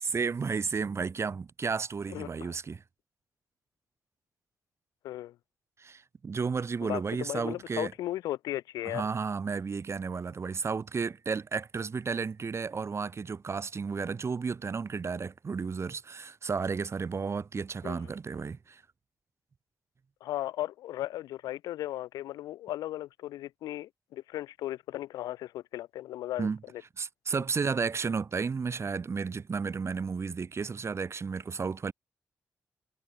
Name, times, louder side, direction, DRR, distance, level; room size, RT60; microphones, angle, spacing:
voice 1, 0.0-2.8 5.8-7.9 8.8-18.8 26.4-26.6 27.0-31.9, right 5 dB, 45° right, 0.6 m, -33 dB
voice 2, 2.1-2.5 5.0-5.3 6.8-9.0 17.8-18.1 20.2-26.8 27.3-27.4, left 14 dB, 85° left, 0.5 m, -36 dB
supercardioid pair, 45°, 6 cm